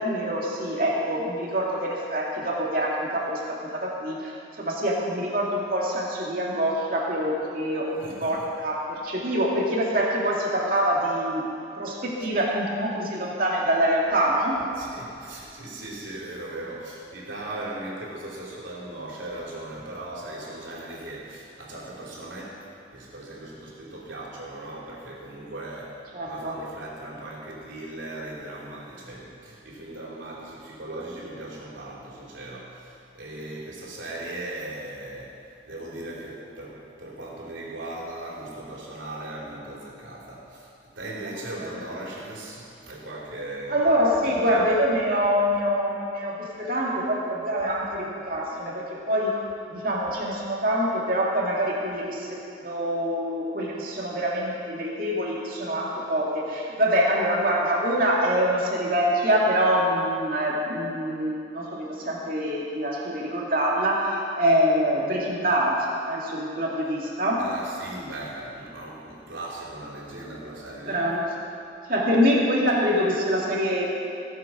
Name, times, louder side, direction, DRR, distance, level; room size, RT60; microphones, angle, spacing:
voice 1, 0.0-11.5 11.8-14.6 26.1-26.6 41.2-41.8 43.7-49.4 49.7-52.4 52.6-67.5 70.9-71.3 71.9-73.8, equal, 50° right, -3 dB, 2.5 m, -25 dB
voice 2, 8.0-8.5 14.8-22.6 22.9-26.0 26.2-35.3 35.7-40.7 40.9-43.8 44.2-44.6 67.4-71.0, right 1 dB, 85° right, -4 dB, 3.4 m, -38 dB
18.5 x 7.8 x 6.1 m, 2.7 s
head